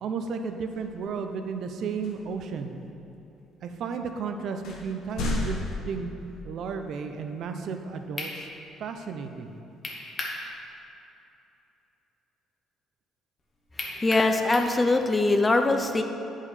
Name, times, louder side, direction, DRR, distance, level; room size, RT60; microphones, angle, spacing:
voice 1, 0.0-2.7 3.6-5.6 5.9-6.1 6.4-8.5 8.8-9.6, right 5 dB, 60° right, 6 dB, 0.6 m, -33 dB
sound 1, 0.7-1.0 2.0-2.4 3.1-3.2 4.0-4.1 4.6-6.6, left 2 dB, 75° left, 0.9 m, -33 dB
sound 2, 8.2-8.4 9.8-10.4 10.8-10.9 13.8-14.8, left 2 dB, 35° left, 1.1 m, -34 dB
voice 2, 13.8-16.0, left 2 dB, 15° left, 6 dB, 0.5 m, -23 dB
8.4 x 5.5 x 4.9 m, 2.9 s
cardioid pair, 125°, 0 cm